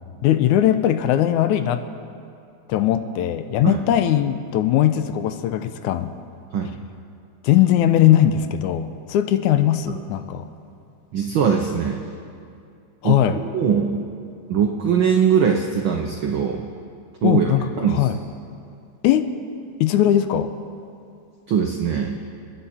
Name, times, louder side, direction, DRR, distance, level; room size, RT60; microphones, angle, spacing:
voice 1, 0.0-1.8 2.7-6.1 7.4-10.5 13.0-13.4 17.2-18.2 19.0-19.3 19.8-20.5, left 11 dB, 90° left, 10 dB, 2.0 m, -19 dB
voice 2, 11.1-12.0 13.0-14.0 14.5-16.6 17.2-18.1 21.5-22.2, right 7 dB, 85° right, 2 dB, 1.1 m, -21 dB
29.0 x 9.8 x 4.3 m, 2.5 s
omnidirectional pair, 3.4 m